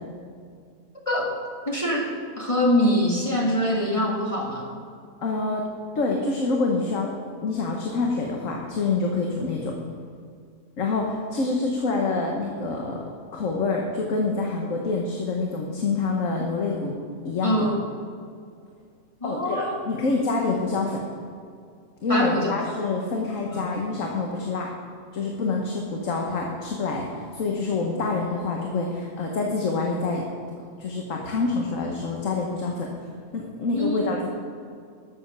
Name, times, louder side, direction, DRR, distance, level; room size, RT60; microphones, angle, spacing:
voice 1, 1.7-4.7 17.4-17.9 19.2-19.7 22.1-22.5 23.5-23.6 33.7-34.2, left 1 dB, 25° left, -2 dB, 1.8 m, -24 dB
voice 2, 5.2-5.6 5.9-7.1 7.4-9.7 10.8-13.0 13.3-16.9 17.2-17.7 19.2-21.0 22.0-24.7 25.1-30.2 30.8-32.9 33.3-34.2, left 3 dB, 70° left, 0 dB, 1.6 m, -26 dB
12.0 x 7.9 x 6.7 m, 2.3 s
omnidirectional pair, 1.4 m